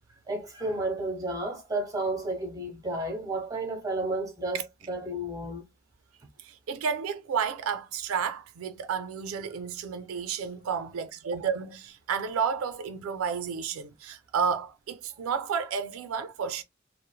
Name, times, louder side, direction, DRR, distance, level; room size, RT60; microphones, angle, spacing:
voice 1, 0.3-5.6, right 2 dB, 15° right, 0.8 m, -32 dB
voice 2, 6.4-16.6, right 6 dB, 85° right, 0.4 m, -31 dB
3.1 x 2.0 x 2.2 m
head